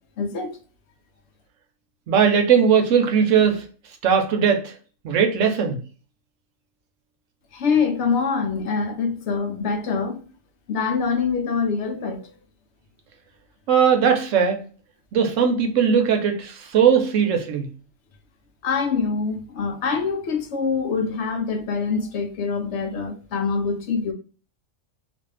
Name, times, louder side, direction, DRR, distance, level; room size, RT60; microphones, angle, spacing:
voice 1, 0.2-0.6 7.5-10.2 10.7-12.3 18.6-24.1, left 5 dB, 70° left, 0.8 m, -24 dB
voice 2, 2.1-3.6 4.0-4.7 5.0-5.8 13.7-14.6 15.1-17.7, right 7 dB, 75° right, 1.0 m, -19 dB
2.5 x 2.4 x 3.2 m
omnidirectional pair, 1.3 m